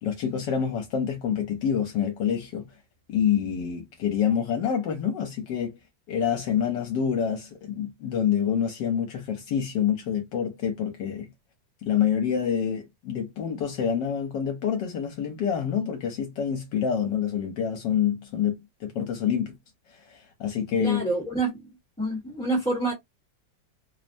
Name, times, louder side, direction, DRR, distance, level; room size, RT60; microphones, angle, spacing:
voice 1, 0.0-2.7 3.1-5.8 6.1-11.3 11.8-19.5 20.1-21.0, left 8 dB, 75° left, 1.3 m, -27 dB
voice 2, 20.8-21.6 22.0-22.9, right 2 dB, 5° left, 0.7 m, -27 dB
3.2 x 2.0 x 2.5 m
omnidirectional pair, 2.0 m